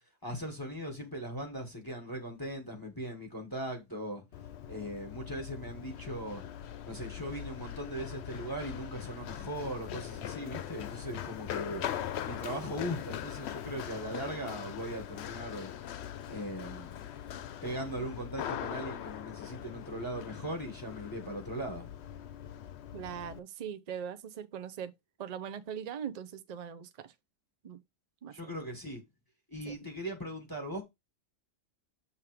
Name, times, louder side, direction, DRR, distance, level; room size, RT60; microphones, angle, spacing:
voice 1, 0.2-4.2 4.7-6.4 6.8-11.9 12.2-15.7 16.2-17.0 17.6-21.9 28.3-29.0 29.5-30.8, equal, 20° left, 1.5 m, -39 dB
Run, 4.3-23.4, left 10 dB, 65° left, 0.8 m, -41 dB
voice 2, 22.9-24.9 25.2-27.1 27.6-27.8 28.2-28.6 29.7-29.8, right 8 dB, 45° right, 0.6 m, -41 dB
7.3 x 3.2 x 4.9 m
omnidirectional pair, 1.2 m